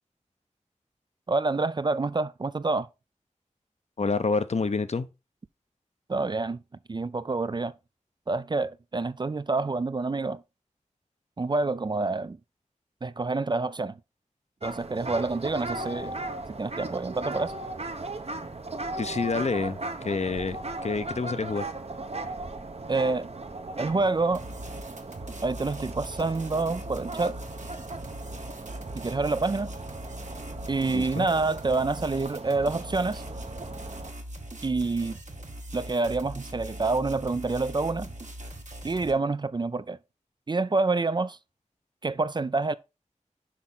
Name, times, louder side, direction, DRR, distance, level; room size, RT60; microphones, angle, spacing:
voice 1, 1.3-2.9 6.1-6.6 6.9-7.7 8.3-10.4 11.4-12.4 13.0-13.9 14.6-16.2 16.6-17.5 22.9-23.4 23.8-24.5 25.4-27.4 29.0-29.7 30.7-33.2 34.6-35.2 35.7-38.1 38.8-40.0 40.5-41.4 42.0-42.7, right 3 dB, 35° right, 0.3 m, -27 dB
voice 2, 4.0-5.1 19.0-19.8 20.0-20.6 20.8-21.7 30.9-31.3, left 4 dB, 60° left, 0.6 m, -28 dB
sound 1, 14.6-34.1, right 2 dB, 55° right, 0.7 m, -37 dB
sound 2, 24.3-39.1, right 1 dB, 70° right, 1.4 m, -41 dB
6.0 x 4.8 x 4.0 m
wide cardioid pair, 65°, 13 cm